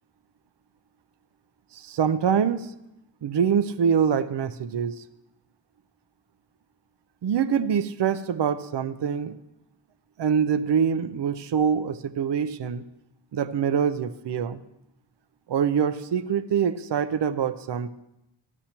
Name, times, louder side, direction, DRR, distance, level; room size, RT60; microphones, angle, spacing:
voice 1, 1.7-2.7 3.2-5.0 7.2-9.4 10.2-12.8 13.3-14.6 15.5-17.9, right 7 dB, 60° right, 11 dB, 0.6 m, -25 dB
16.0 x 12.0 x 2.9 m, 0.86 s
cardioid pair, 45°, 47 cm